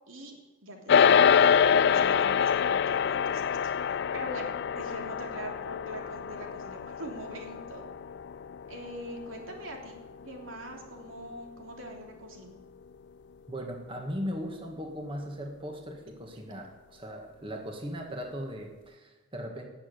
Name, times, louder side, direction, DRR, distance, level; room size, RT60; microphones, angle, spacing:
voice 1, 0.6-7.9 8.7-12.5, right 1 dB, 85° right, 1 dB, 3.2 m, -43 dB
sound 1, 0.9-10.4, left 7 dB, 60° left, 0.4 m, -26 dB
voice 2, 13.5-19.7, equal, 25° right, 2 dB, 1.8 m, -38 dB
19.0 x 7.1 x 9.4 m, 1.2 s
head